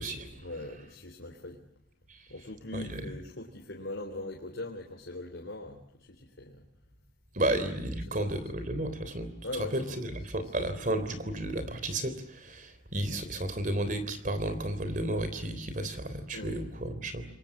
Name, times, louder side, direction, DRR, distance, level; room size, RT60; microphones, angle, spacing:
voice 1, 0.4-1.6 2.3-6.6 7.4-7.6 8.1-8.2 9.4-10.0 10.4-10.5 16.3-16.6, left 2 dB, 90° left, 1 dB, 3.5 m, -41 dB
voice 2, 7.3-17.3, right 1 dB, 45° right, 11 dB, 3.5 m, -32 dB
28.5 x 23.5 x 7.3 m, 0.74 s
head